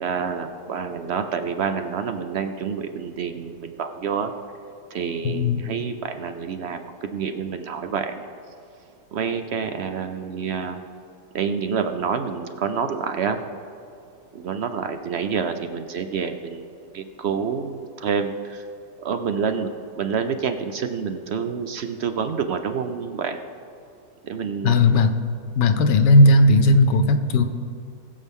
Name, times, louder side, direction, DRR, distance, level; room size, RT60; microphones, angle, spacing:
voice 1, 0.0-4.3 4.9-8.2 9.1-10.8 11.3-13.4 14.3-16.7 16.9-18.7 19.0-19.7 20.0-23.4 24.2-25.0, right 6 dB, 70° right, 8 dB, 0.6 m, -28 dB
voice 2, 5.2-5.6 24.6-25.1 25.6-27.4, left 2 dB, 90° left, 8 dB, 1.4 m, -16 dB
20.0 x 7.4 x 3.6 m, 2.5 s
omnidirectional pair, 1.8 m